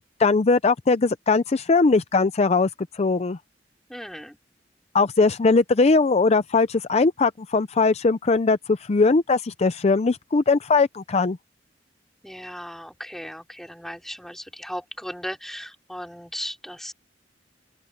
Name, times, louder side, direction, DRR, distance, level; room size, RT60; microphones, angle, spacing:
voice 1, 0.2-3.4 4.9-11.4, left 3 dB, 35° left, 0.5 m, -20 dB
voice 2, 3.9-4.4 12.2-16.9, equal, ahead, 4.3 m, -36 dB
open air
head